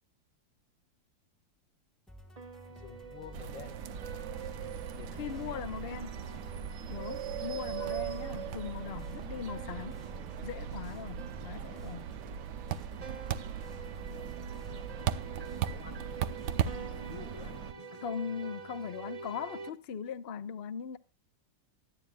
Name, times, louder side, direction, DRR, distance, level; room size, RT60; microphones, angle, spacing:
sound 1, 2.1-16.8, left 1 dB, ahead, 1.3 m, -54 dB
sound 2, 2.4-19.7, right 5 dB, 30° right, 0.7 m, -48 dB
voice 1, 2.7-3.8 4.9-5.7 6.9-7.2 14.0-15.2 15.6-16.1 16.9-18.0, left 8 dB, 90° left, 2.2 m, -52 dB
sound 3, 3.3-17.7, right 9 dB, 70° right, 1.3 m, -38 dB
voice 2, 5.2-6.1 6.9-10.0 10.4-12.1 18.0-21.0, left 7 dB, 50° left, 0.8 m, -39 dB
24.5 x 9.1 x 2.3 m
omnidirectional pair, 2.0 m